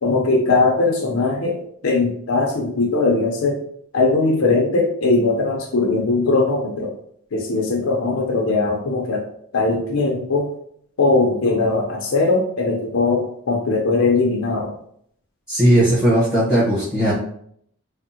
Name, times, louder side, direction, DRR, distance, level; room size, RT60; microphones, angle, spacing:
voice 1, 0.0-1.6 1.8-3.6 3.9-6.9 7.3-9.2 9.5-10.5 11.0-14.7, left 3 dB, 65° left, 0 dB, 0.5 m, -19 dB
voice 2, 15.5-17.1, right 1 dB, 20° right, -11 dB, 1.0 m, -17 dB
3.5 x 2.0 x 2.7 m, 0.67 s
head